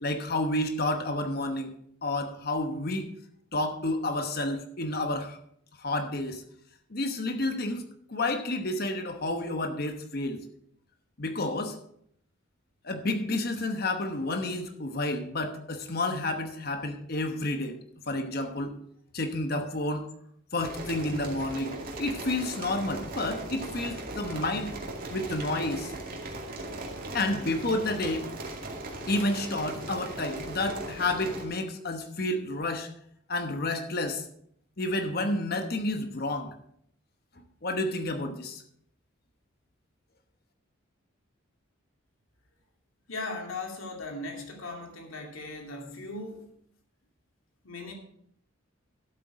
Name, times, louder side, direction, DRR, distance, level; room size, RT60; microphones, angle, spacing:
voice 1, 0.0-1.7 2.0-3.1 3.5-5.4 5.8-6.4 6.9-7.8 8.1-10.4 11.2-11.8 12.8-17.8 18.1-18.7 19.1-20.1 20.5-24.7 25.1-25.9 27.1-28.3 29.1-32.9 33.3-34.2 34.8-36.5 37.6-38.6, left 2 dB, 50° left, 6 dB, 1.0 m, -30 dB
sound 1, 20.6-31.5, right 2 dB, 45° right, 2.3 m, -38 dB
voice 2, 43.1-46.4 47.6-47.9, left 2 dB, 85° left, 1 dB, 2.5 m, -38 dB
12.0 x 8.2 x 4.8 m, 0.69 s
head